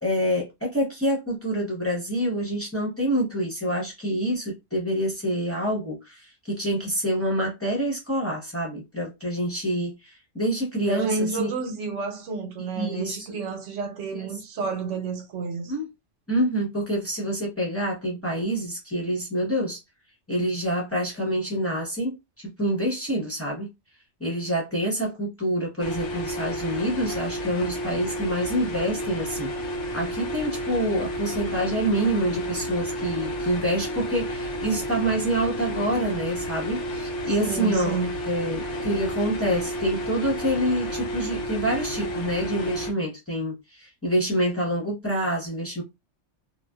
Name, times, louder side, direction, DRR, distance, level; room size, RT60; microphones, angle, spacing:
voice 1, 0.0-11.5 12.7-13.3 15.7-15.9 16.3-19.8 20.3-23.7 24.2-38.0 38.3-45.8, equal, 15° left, 0.8 m, -27 dB
voice 2, 10.9-15.7 37.4-38.1, right 4 dB, 90° right, 1.1 m, -30 dB
sound 1, 25.8-42.9, equal, 85° left, 1.0 m, -31 dB
2.5 x 2.2 x 2.3 m
omnidirectional pair, 1.2 m